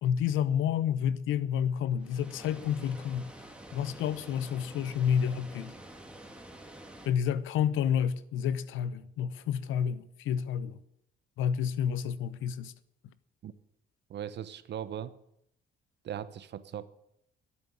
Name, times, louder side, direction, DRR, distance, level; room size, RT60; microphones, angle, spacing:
voice 1, 0.0-3.3 3.7-5.7 7.0-10.8 11.4-12.7, left 8 dB, 85° left, 0.8 m, -29 dB
Water, 2.0-7.1, right 1 dB, 5° right, 2.2 m, -48 dB
voice 2, 14.1-15.2 16.0-16.9, right 10 dB, 60° right, 0.9 m, -39 dB
12.5 x 7.3 x 8.7 m
cardioid pair, 90°, 20 cm